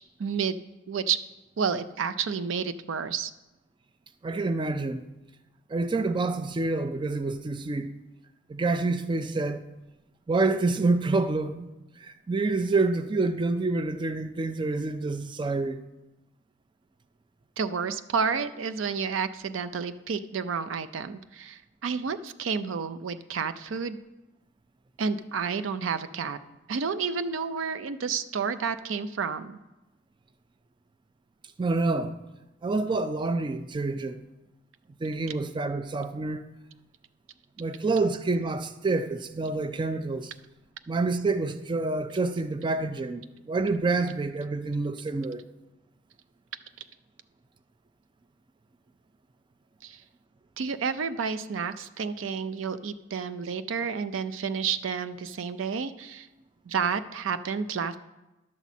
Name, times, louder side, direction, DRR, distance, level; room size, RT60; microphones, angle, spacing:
voice 1, 0.2-0.6 0.9-1.2 1.6-3.3 17.6-24.0 25.0-26.4 26.7-29.6 49.8-50.0 50.6-56.3 56.7-58.0, right 6 dB, 85° right, 0.5 m, -30 dB
voice 2, 4.2-5.0 5.7-7.9 8.5-9.6 10.3-11.7 12.0-15.8 31.6-32.1 32.6-34.2 35.0-36.4 37.6-40.3 40.9-45.4, right 3 dB, 25° right, 0.4 m, -27 dB
11.0 x 4.2 x 7.1 m
head